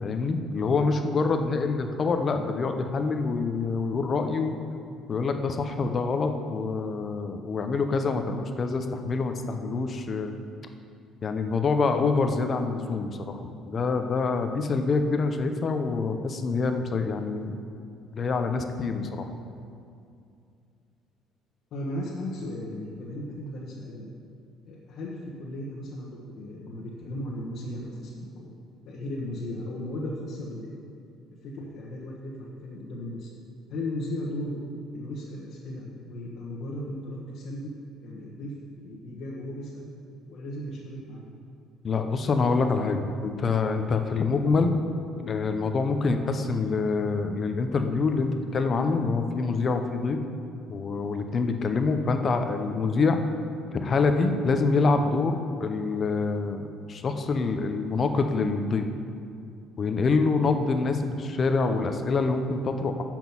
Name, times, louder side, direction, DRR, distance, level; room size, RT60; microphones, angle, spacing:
voice 1, 0.0-4.5 5.1-10.3 11.2-17.6 18.1-19.3 41.8-44.8 45.2-50.2 50.7-53.2 53.7-56.6 56.9-58.8 59.8-63.0, left 4 dB, 30° left, 6 dB, 0.6 m, -26 dB
voice 2, 21.7-24.1 24.7-28.5 28.8-30.8 31.4-33.3 33.7-34.6 34.9-37.7 38.0-38.5 38.8-39.9 40.3-41.2, left 1 dB, 50° left, -5 dB, 1.3 m, -36 dB
7.3 x 6.1 x 7.1 m, 2.4 s
cardioid pair, 165°, 0 cm